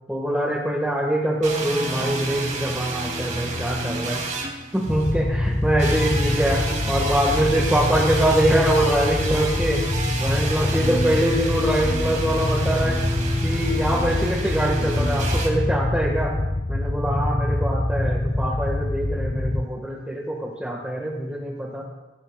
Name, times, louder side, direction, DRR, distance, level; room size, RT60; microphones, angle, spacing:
voice 1, 0.1-4.3 4.7-9.9 10.2-13.0 13.4-16.4 16.7-21.9, right 1 dB, 5° right, -1 dB, 1.7 m, -24 dB
sound 1, 1.4-5.2 5.8-15.5, right 2 dB, 45° right, 2.8 m, -30 dB
sound 2, 4.8-19.6, left 1 dB, 25° left, 0.5 m, -25 dB
28.0 x 16.0 x 2.4 m, 1.2 s
head